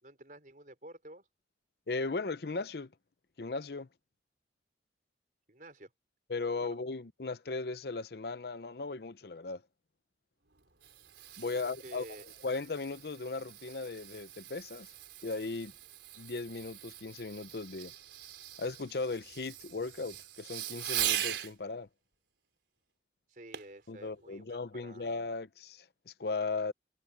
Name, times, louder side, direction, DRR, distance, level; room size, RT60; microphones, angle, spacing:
voice 1, 0.0-1.3 5.5-5.9 6.6-6.8 11.8-12.2 23.3-25.1, right 1 dB, 45° right, 5.0 m, -51 dB
voice 2, 1.9-2.9 3.4-3.9 6.3-9.6 11.4-12.0 12.4-14.9 15.2-15.7 16.2-17.9 18.6-21.9 23.9-26.7, left 3 dB, 60° left, 0.6 m, -37 dB
Fireworks, 10.5-21.5 23.5-23.8 24.4-24.5, right 11 dB, 85° right, 4.1 m, -41 dB
head